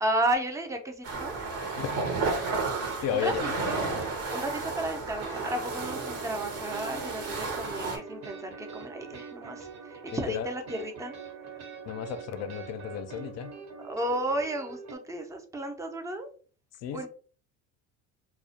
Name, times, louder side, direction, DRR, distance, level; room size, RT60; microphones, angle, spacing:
voice 1, 0.0-1.3 3.1-4.0 4.3-11.2 13.8-16.3 16.9-17.1, right 1 dB, 10° right, 0.4 m, -33 dB
sound 1, 1.0-8.0, right 4 dB, 45° right, 0.7 m, -32 dB
sound 2, 2.3-15.0, right 4 dB, 75° right, 1.1 m, -44 dB
voice 2, 3.0-3.7 10.3-10.5 11.8-13.5 16.8-17.1, left 8 dB, 50° left, 0.4 m, -33 dB
2.3 x 2.1 x 2.7 m
supercardioid pair, 105°, 33 cm